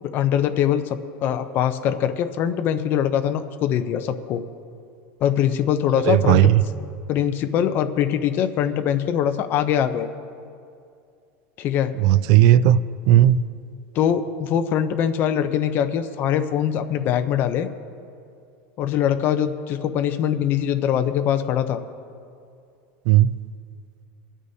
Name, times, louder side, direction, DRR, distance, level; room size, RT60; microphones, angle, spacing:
voice 1, 0.0-4.4 5.2-6.5 7.1-10.1 11.6-11.9 13.9-17.7 18.8-21.8, left 9 dB, 35° left, 8 dB, 0.6 m, -22 dB
voice 2, 6.1-6.6 12.0-12.8 13.1-13.4 23.1-23.3, right 12 dB, 50° right, 15 dB, 0.4 m, -15 dB
24.0 x 9.8 x 2.7 m, 2.4 s
supercardioid pair, 165°, 6 cm